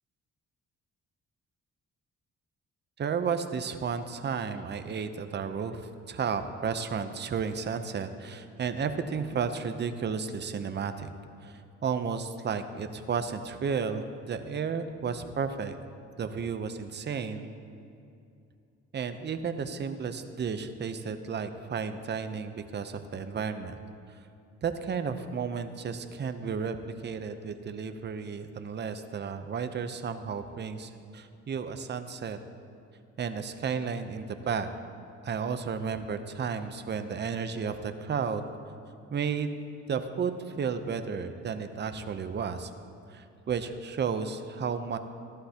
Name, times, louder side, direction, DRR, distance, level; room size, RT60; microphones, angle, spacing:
voice 1, 3.0-11.1 11.4-15.7 16.2-17.5 18.9-23.8 24.6-26.8 27.0-32.4 33.2-34.7 35.2-38.4 39.1-39.6 39.9-42.7 43.1-45.0, right 6 dB, 35° right, 9 dB, 0.7 m, -33 dB
14.0 x 11.5 x 2.9 m, 2.6 s
cardioid pair, 90°, 30 cm